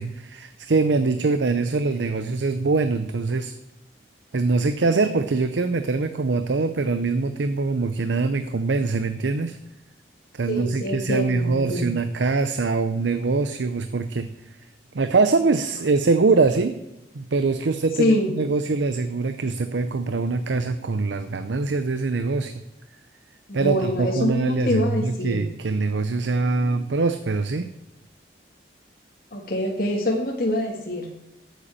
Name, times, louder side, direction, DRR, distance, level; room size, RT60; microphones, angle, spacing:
voice 1, 0.0-3.5 4.3-9.6 10.3-14.3 14.9-16.7 17.1-22.6 23.5-27.7, right 3 dB, 90° right, 10 dB, 0.6 m, -23 dB
voice 2, 10.5-11.9 18.0-18.4 23.5-25.4 29.3-31.1, left 1 dB, 55° left, -1 dB, 1.7 m, -25 dB
8.3 x 8.1 x 8.8 m, 0.90 s
head